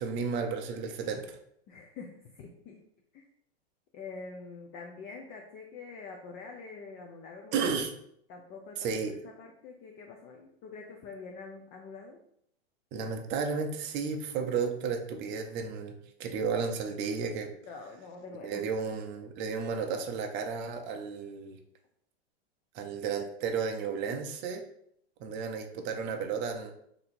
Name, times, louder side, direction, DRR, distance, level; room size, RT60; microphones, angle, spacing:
voice 1, 0.0-1.4 7.5-7.9 8.8-9.1 12.9-17.5 18.4-21.6 22.7-24.6 25.2-26.7, right 5 dB, 35° right, 4 dB, 0.5 m, -33 dB
voice 2, 1.7-2.9 3.1-3.2 3.9-7.9 8.3-8.9 9.2-12.2 17.7-18.7, left 4 dB, 30° left, 2 dB, 0.4 m, -45 dB
2.8 x 2.7 x 4.2 m, 0.70 s
hypercardioid pair, 125°, 33 cm